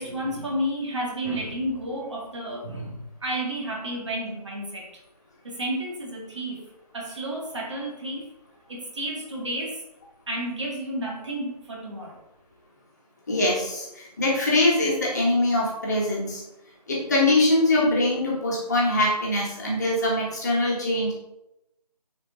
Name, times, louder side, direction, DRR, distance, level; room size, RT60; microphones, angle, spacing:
voice 1, 0.0-4.9 5.4-6.7 6.9-8.3 8.7-9.8 10.3-12.2, right 1 dB, 45° right, -1 dB, 2.0 m, -31 dB
voice 2, 13.3-16.4 16.9-21.1, left 1 dB, 25° left, -4 dB, 1.6 m, -23 dB
9.7 x 4.5 x 3.7 m, 0.87 s
figure-of-eight pair, 165°, 21 cm